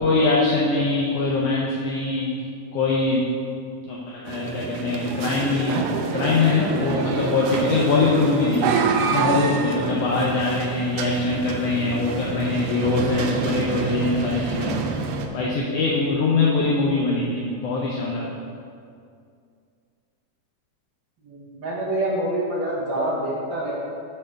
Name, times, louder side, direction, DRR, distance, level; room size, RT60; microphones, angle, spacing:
voice 1, 0.0-2.3 2.7-3.3 3.9-8.8 9.1-14.8 15.3-18.3, left 3 dB, 75° left, -4 dB, 1.4 m, -22 dB
sound 1, 4.3-15.3, right 5 dB, 90° right, 2.1 m, -27 dB
voice 2, 21.2-23.8, right 1 dB, 60° right, -6 dB, 1.2 m, -26 dB
7.7 x 3.4 x 6.4 m, 2.3 s
omnidirectional pair, 3.5 m